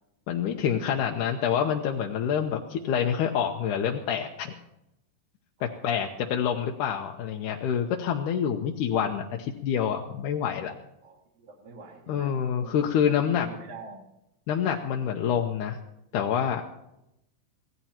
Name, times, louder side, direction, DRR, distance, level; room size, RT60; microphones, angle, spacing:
voice 1, 0.3-4.5 5.6-10.7 12.1-13.5 14.5-15.8 16.1-16.6, left 8 dB, 75° left, 2 dB, 2.1 m, -27 dB
voice 2, 5.6-6.2 11.0-14.1, right 3 dB, 50° right, -5 dB, 2.6 m, -46 dB
25.0 x 17.0 x 2.9 m, 0.88 s
omnidirectional pair, 4.1 m